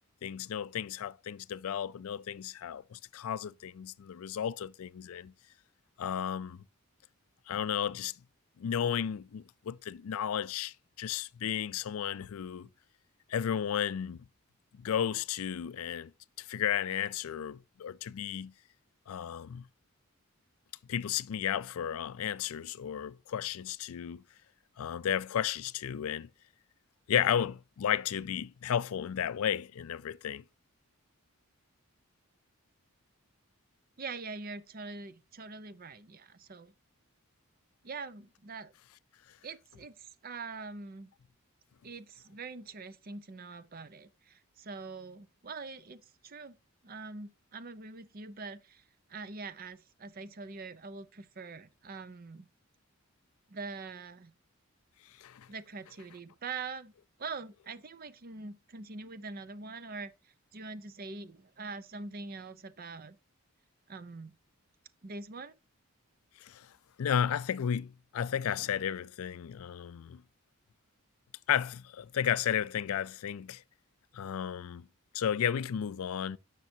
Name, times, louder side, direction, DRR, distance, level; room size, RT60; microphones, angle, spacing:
voice 1, 0.2-5.3 6.0-6.6 7.5-8.1 8.6-12.7 13.3-14.3 14.7-16.1 16.4-18.5 19.1-19.7 20.9-24.2 24.8-26.3 27.1-30.4 55.2-55.5 66.4-66.7 67.0-70.2 71.5-73.6 74.1-74.9 75.1-76.4, left 9 dB, 70° left, 0.4 m, -33 dB
voice 2, 34.0-36.7 37.8-38.7 39.4-41.1 41.8-46.6 46.8-48.8 49.1-52.5 53.5-54.3 55.5-56.9 57.2-63.2 63.9-64.3 65.0-65.5, right 4 dB, 40° right, 0.6 m, -44 dB
10.5 x 6.7 x 2.7 m
head